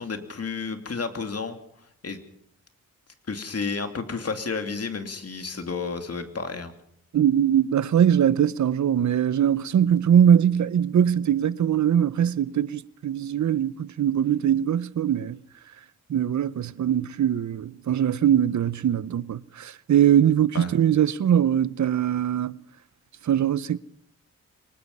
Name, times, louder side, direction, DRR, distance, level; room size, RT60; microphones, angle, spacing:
voice 1, 0.0-1.6 2.0-2.2 3.3-6.7 20.5-20.7, left 4 dB, 50° left, 2.7 m, -31 dB
voice 2, 7.1-15.4 16.1-22.6 23.2-23.8, right 9 dB, 65° right, 0.8 m, -21 dB
23.5 x 20.0 x 5.5 m
cardioid pair, 65°, 31 cm